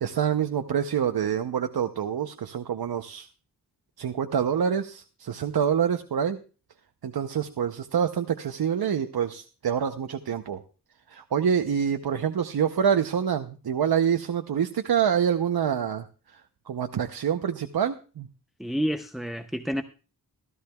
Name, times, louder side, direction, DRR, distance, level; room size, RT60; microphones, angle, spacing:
voice 1, 0.0-3.3 4.0-6.4 7.0-10.6 11.1-16.1 16.3-16.4 16.7-18.3, right 8 dB, 70° right, 7 dB, 0.7 m, -26 dB
voice 2, 18.6-19.8, equal, ahead, 8 dB, 0.5 m, -29 dB
16.0 x 13.5 x 2.3 m, 0.35 s
wide cardioid pair, 105°, 38 cm